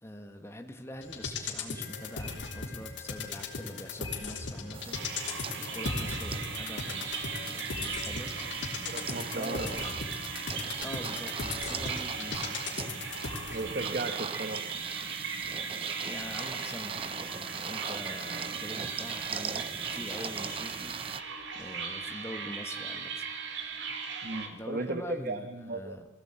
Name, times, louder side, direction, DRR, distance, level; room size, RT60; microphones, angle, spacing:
voice 1, 0.0-5.0 5.6-8.3 9.3-10.0 10.8-12.6 16.0-21.0 21.5-23.2 24.4-26.1, left 1 dB, 15° left, 5 dB, 1.3 m, -44 dB
sound 1, 1.0-13.8 14.2-14.3, left 3 dB, 90° left, 3.1 m, -38 dB
sound 2, 4.7-21.2, right 6 dB, 30° right, 0.7 m, -40 dB
sound 3, 4.9-24.5, right 5 dB, 75° right, 2.4 m, -38 dB
voice 2, 8.9-9.7 13.5-14.6 24.2-26.0, right 2 dB, 50° right, 8 dB, 1.2 m, -35 dB
21.0 x 16.0 x 8.8 m, 1.2 s
head